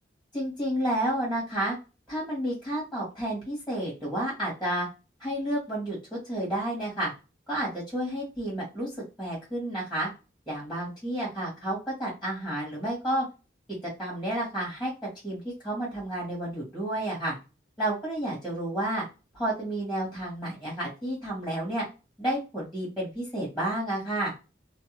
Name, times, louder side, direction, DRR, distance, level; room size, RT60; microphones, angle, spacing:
voice 1, 0.3-1.8 2.1-4.9 5.2-7.1 7.5-10.1 10.5-13.2 13.8-14.9 15.2-17.3 17.8-19.0 19.3-21.8 22.2-24.3, right 1 dB, ahead, -5 dB, 1.2 m, -31 dB
2.6 x 2.1 x 2.9 m, 0.30 s
head